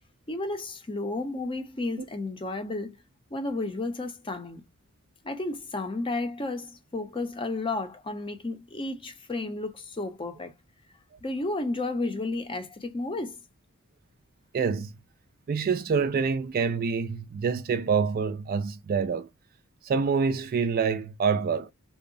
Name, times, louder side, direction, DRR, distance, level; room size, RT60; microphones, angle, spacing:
voice 1, 0.3-3.0 3.3-4.7 5.2-10.5 11.2-13.4, left 2 dB, 25° left, 0.6 m, -32 dB
voice 2, 14.5-14.9 15.5-19.3 19.8-21.7, right 5 dB, 45° right, 0.3 m, -26 dB
2.7 x 2.0 x 2.5 m
head